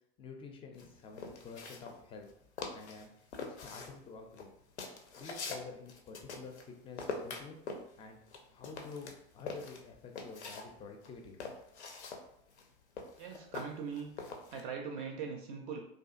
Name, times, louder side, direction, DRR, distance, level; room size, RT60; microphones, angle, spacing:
voice 1, 0.2-2.3 2.7-3.1 3.6-4.5 5.2-7.6 8.0-8.2 8.5-11.4, left 4 dB, 15° left, 3 dB, 0.3 m, -49 dB
sound 1, 0.8-2.3 2.6-3.1 3.3-6.7 7.0-10.7 11.0-14.6, left 4 dB, 80° left, 0.5 m, -44 dB
voice 2, 13.2-14.1 14.5-15.9, right 6 dB, 50° right, 2 dB, 0.4 m, -41 dB
2.6 x 2.3 x 2.4 m, 0.75 s
figure-of-eight pair, 75°, 33 cm